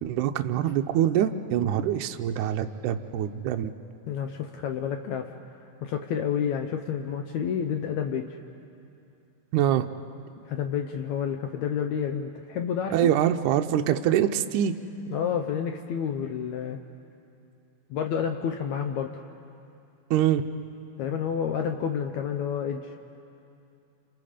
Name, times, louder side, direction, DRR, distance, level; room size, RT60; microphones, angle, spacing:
voice 1, 0.0-3.7 9.5-9.9 12.9-14.7 20.1-20.4, right 10 dB, 80° right, 6 dB, 1.9 m, -24 dB
voice 2, 4.1-5.3 5.8-8.4 10.5-13.0 15.1-16.8 17.9-19.2 21.0-22.9, left 8 dB, 75° left, 5 dB, 1.7 m, -29 dB
29.5 x 27.5 x 5.0 m, 2.7 s
omnidirectional pair, 4.1 m